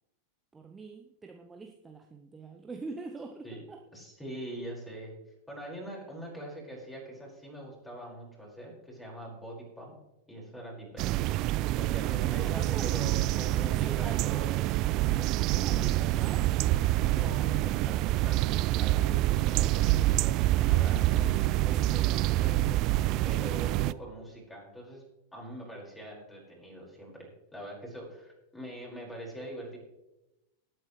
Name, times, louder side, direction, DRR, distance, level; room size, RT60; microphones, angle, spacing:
voice 1, 0.5-3.8 12.3-13.0 13.8-14.5 15.1-16.5 16.9-17.2, right 4 dB, 15° right, 4 dB, 0.8 m, -45 dB
voice 2, 3.9-5.2 5.5-10.0 10.3-11.3 11.8-14.6 15.6-16.0 17.1-21.3 21.6-22.8 23.2-25.0 25.3-29.8, right 1 dB, 10° left, -2 dB, 5.3 m, -43 dB
sound 1, 11.0-23.9, right 16 dB, 40° right, 0.3 m, -26 dB
19.0 x 9.2 x 3.3 m, 0.94 s
figure-of-eight pair, 90°, 0 cm